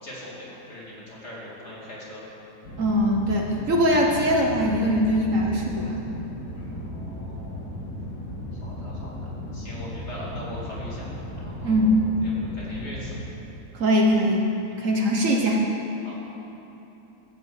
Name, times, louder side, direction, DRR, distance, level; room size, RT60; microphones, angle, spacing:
voice 1, 0.0-2.2 6.7-7.7 8.6-11.1 11.4-13.2 14.7-14.9 16.0-16.1, left 1 dB, 45° left, -6 dB, 2.9 m, -41 dB
sound 1, 2.6-13.2, left 1 dB, 80° left, 2.4 m, -36 dB
voice 2, 2.8-6.0 11.6-12.0 13.7-14.5 14.8-15.6, equal, 55° right, 0 dB, 1.4 m, -21 dB
14.0 x 5.9 x 8.0 m, 2.9 s
omnidirectional pair, 1.7 m